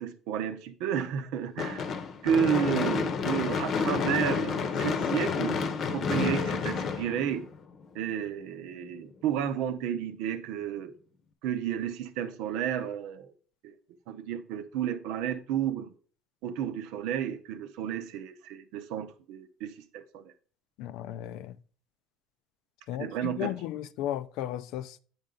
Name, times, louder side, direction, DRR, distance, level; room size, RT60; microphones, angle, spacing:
voice 1, 0.0-1.9 2.2-7.4 7.9-10.9 11.4-13.3 13.6-13.7 14.1-15.9 16.4-20.3 23.0-23.6, right 9 dB, 80° right, 0.8 m, -32 dB
Gunshot gunfire / Fireworks, 1.6-7.8, left 5 dB, 50° left, 0.8 m, -30 dB
voice 2, 20.8-21.6 22.9-25.0, left 12 dB, 75° left, 0.4 m, -35 dB
8.8 x 5.3 x 3.8 m
supercardioid pair, 100°, 0 cm